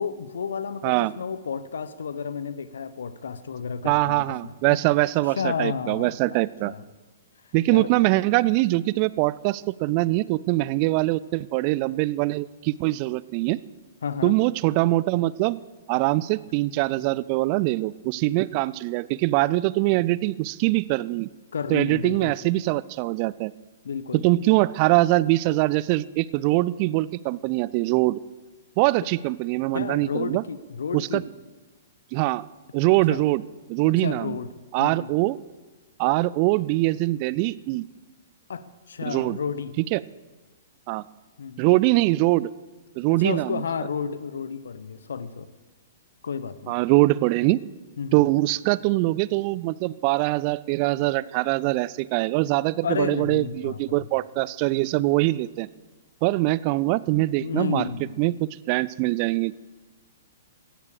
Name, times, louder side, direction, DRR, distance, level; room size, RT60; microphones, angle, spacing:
voice 1, 0.0-4.5 5.4-6.2 6.6-6.8 7.6-7.9 14.0-14.3 21.5-22.3 23.8-24.2 29.0-29.1 29.7-31.2 33.1-33.2 34.0-34.5 34.8-35.1 38.5-39.7 41.4-41.6 43.1-45.5 46.2-46.8 48.0-48.2 52.8-54.1 57.4-58.2, left 6 dB, 65° left, 14 dB, 0.9 m, -31 dB
voice 2, 3.8-6.7 7.5-13.6 14.2-15.6 15.9-21.3 21.7-23.5 24.1-28.2 28.8-30.4 30.9-31.2 32.1-32.4 32.7-33.4 33.7-34.4 34.7-35.4 36.0-37.8 39.1-39.4 39.8-40.0 40.9-41.0 41.6-42.5 43.0-43.6 46.7-47.6 48.1-55.7 56.2-57.9 58.2-59.5, right 19 dB, 40° right, 20 dB, 0.4 m, -23 dB
17.0 x 13.5 x 5.0 m, 1.2 s
figure-of-eight pair, 115°, 0 cm